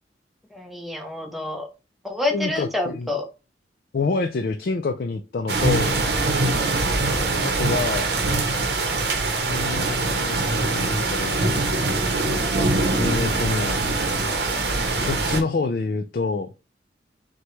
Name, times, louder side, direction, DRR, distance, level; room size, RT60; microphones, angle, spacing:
voice 1, 0.5-1.7 2.0-3.3 6.6-6.9 15.1-15.4, left 2 dB, ahead, 2 dB, 0.7 m, -29 dB
voice 2, 2.3-3.1 3.9-6.0 7.4-8.1 9.5-11.5 13.0-13.8 15.0-16.5, left 3 dB, 50° left, 6 dB, 0.4 m, -27 dB
sound 1, 5.5-15.4, right 2 dB, 65° right, 0.8 m, -23 dB
6.0 x 2.2 x 3.1 m, 0.29 s
head